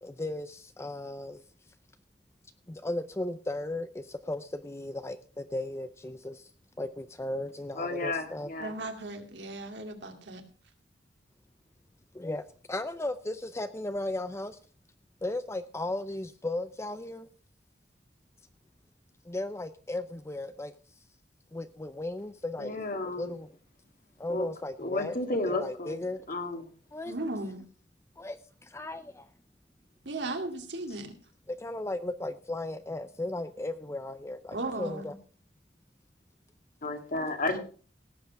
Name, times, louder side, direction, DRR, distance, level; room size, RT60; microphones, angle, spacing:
voice 1, 0.0-1.4 2.7-6.5 6.8-8.5 12.1-14.6 15.2-17.3 19.2-20.7 21.5-22.8 23.0-23.6 24.2-25.2 25.4-26.2 26.9-27.1 28.2-29.3 31.5-35.2, left 2 dB, 15° left, 0.5 m, -36 dB
voice 2, 7.8-8.7 22.6-23.3 24.3-24.5 24.8-26.0 26.3-26.7 36.8-37.6, left 2 dB, 50° left, 2.0 m, -32 dB
voice 3, 8.6-10.4 27.0-27.6 30.0-31.1 34.5-35.0, right 2 dB, 75° right, 2.4 m, -36 dB
17.5 x 7.9 x 4.7 m
head